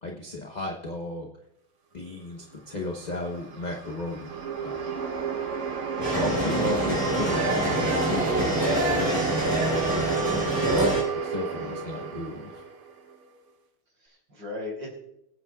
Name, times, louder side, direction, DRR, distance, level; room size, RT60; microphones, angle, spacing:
voice 1, 0.0-1.3 1.9-4.3 4.6-4.8 6.0-9.9 11.2-12.6, left 2 dB, 30° left, 0 dB, 0.8 m, -34 dB
sound 1, 2.8-13.2, right 5 dB, 50° right, 1.1 m, -31 dB
voice 2, 5.8-6.5 11.5-11.9 14.0-15.0, left 2 dB, 65° right, -1 dB, 4.2 m, -38 dB
sound 2, 6.0-11.0, equal, 10° right, 3.3 m, -26 dB
23.0 x 8.8 x 2.4 m, 0.81 s
omnidirectional pair, 2.1 m